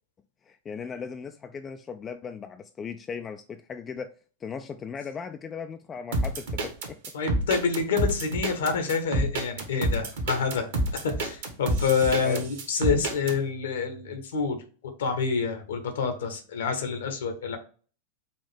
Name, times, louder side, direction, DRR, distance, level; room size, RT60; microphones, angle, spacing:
voice 1, 0.5-4.1 4.4-7.0 12.2-12.5, left 6 dB, 20° left, 0.3 m, -37 dB
sound 1, 6.1-13.4, right 2 dB, 55° right, 1.1 m, -28 dB
voice 2, 7.1-10.7 10.9-14.6 15.0-17.6, left 5 dB, 60° left, 1.0 m, -27 dB
5.4 x 2.5 x 3.4 m
figure-of-eight pair, 90°, 0 cm